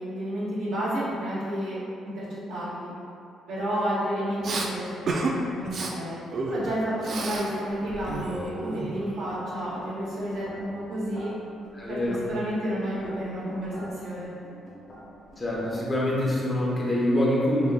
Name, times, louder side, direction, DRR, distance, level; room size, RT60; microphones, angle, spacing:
voice 1, 0.0-1.8 2.0-2.9 3.5-4.9 5.1-6.2 6.5-11.3 11.9-13.7 14.0-14.3, equal, 85° right, -10 dB, 0.9 m, -31 dB
Respiratory sounds, 4.4-4.7 5.1-5.3 5.6-5.9 6.3-7.5 7.7-9.2, right 3 dB, 55° right, 0.3 m, -31 dB
sound 1, 6.1-16.2, equal, 50° left, 1.1 m, -47 dB
voice 2, 11.7-12.2 15.4-17.7, left 1 dB, 25° left, -5 dB, 0.8 m, -25 dB
3.6 x 2.9 x 2.3 m, 2.6 s
cardioid pair, 90°, 0 cm